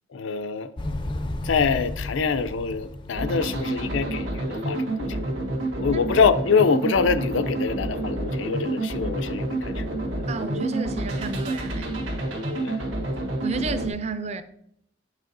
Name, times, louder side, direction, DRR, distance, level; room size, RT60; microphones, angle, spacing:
voice 1, 0.1-0.7 1.4-5.2 5.8-9.8 10.2-10.3 12.6-12.9, left 5 dB, 85° left, 0.5 m, -25 dB
Motorcycle, 0.8-4.7, left 1 dB, 25° left, 0.4 m, -34 dB
sound 1, 3.1-13.9, right 1 dB, 80° right, 1.6 m, -29 dB
voice 2, 10.3-11.9 13.4-14.4, right 3 dB, 35° right, 0.4 m, -31 dB
8.3 x 6.1 x 2.6 m
head